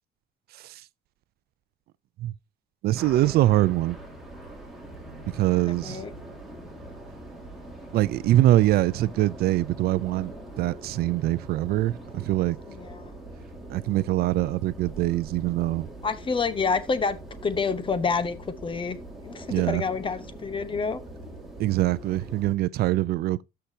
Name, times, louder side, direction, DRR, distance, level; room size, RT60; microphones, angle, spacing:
voice 1, 2.8-4.0 5.3-6.0 7.9-10.3 10.6-12.6 13.7-15.9 19.5-19.8 21.6-23.4, right 15 dB, 70° right, 0.5 m, -23 dB
sound 1, 2.9-22.5, right 1 dB, ahead, 3.0 m, -43 dB
voice 2, 12.7-13.1 16.0-18.4 18.6-19.0 19.2-21.0, left 5 dB, 30° left, 1.1 m, -28 dB
13.0 x 5.8 x 2.8 m
cardioid pair, 110°, 17 cm